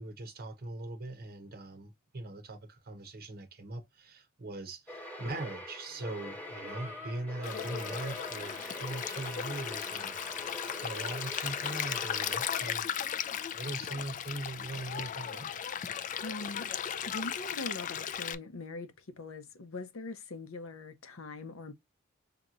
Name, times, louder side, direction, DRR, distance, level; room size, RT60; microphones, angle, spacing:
voice 1, 0.0-10.2 10.4-12.8 13.5-15.7, right 2 dB, 45° right, 0.8 m, -41 dB
sound 1, 4.9-13.2, left 1 dB, 10° left, 1.0 m, -44 dB
sound 2, 5.9-11.1, left 2 dB, 10° right, 0.8 m, -51 dB
Stream, 7.4-18.4, left 9 dB, 40° left, 0.3 m, -36 dB
voice 2, 16.2-16.7 17.1-21.7, left 2 dB, 75° left, 0.8 m, -42 dB
5.2 x 2.9 x 2.4 m
head